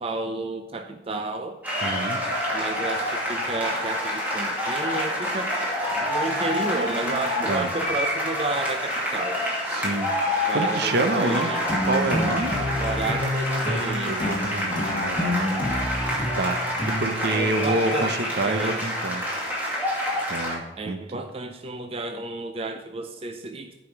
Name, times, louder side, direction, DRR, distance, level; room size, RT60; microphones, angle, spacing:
voice 1, 0.0-1.6 2.5-5.6 5.9-9.5 10.4-11.6 12.8-14.2 17.3-18.2 18.4-18.8 20.8-23.8, right 2 dB, 35° right, 5 dB, 0.5 m, -31 dB
sound 1, 1.6-20.6, equal, 10° right, 2.4 m, -27 dB
voice 2, 1.8-2.2 7.5-7.7 9.7-10.1 10.5-11.5 11.8-12.6 14.1-15.5 16.3-19.3 20.3-21.0, right 2 dB, 65° right, 8 dB, 0.9 m, -27 dB
sound 2, 11.7-18.1, left 1 dB, 25° left, 1.2 m, -29 dB
8.4 x 5.1 x 6.0 m, 1.2 s
head